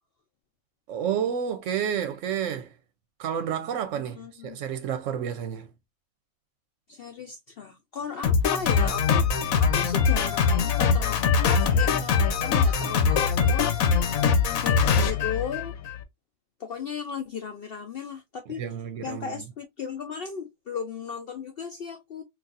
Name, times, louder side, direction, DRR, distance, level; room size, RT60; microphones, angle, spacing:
voice 1, 0.9-2.7 3.2-4.2 4.4-5.7 18.6-19.4, right 8 dB, 70° right, 0.9 m, -30 dB
voice 2, 3.9-4.6 6.9-11.2 11.5-13.7 14.6-15.7 16.6-18.6 19.0-22.2, left 6 dB, 60° left, 0.6 m, -36 dB
Drum kit, 8.2-16.0, left 6 dB, 85° left, 1.1 m, -22 dB
4.0 x 2.5 x 2.4 m
omnidirectional pair, 1.4 m